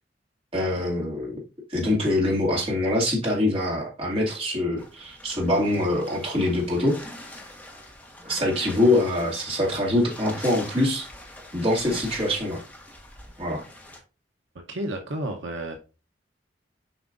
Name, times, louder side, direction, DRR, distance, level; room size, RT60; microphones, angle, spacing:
voice 1, 0.5-1.4 1.7-7.0 8.2-11.1 11.5-12.6 13.4-13.6, left 1 dB, 30° right, 2.2 m, -24 dB
sound 1, 4.8-14.0, left 1 dB, 10° left, 1.4 m, -43 dB
voice 2, 14.7-15.8, right 1 dB, 75° right, 0.9 m, -31 dB
7.5 x 4.9 x 2.5 m
head